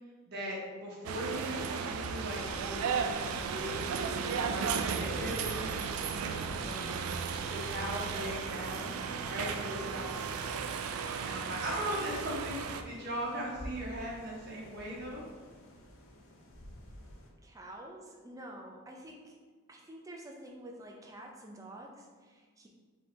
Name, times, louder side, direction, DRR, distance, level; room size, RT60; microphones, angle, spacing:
voice 1, 0.3-7.1 7.5-9.0 9.3-10.5 11.2-15.2, equal, 50° right, -5 dB, 1.1 m, -39 dB
sound 1, 1.0-12.8, right 6 dB, 80° right, 0.3 m, -35 dB
sound 2, 2.1-8.2, equal, 50° left, 1.3 m, -51 dB
sound 3, 3.4-17.3, equal, 70° left, 0.6 m, -54 dB
voice 2, 17.4-19.4 19.7-22.7, right 1 dB, 15° right, 0 dB, 0.4 m, -48 dB
4.5 x 2.9 x 3.3 m, 1.5 s
head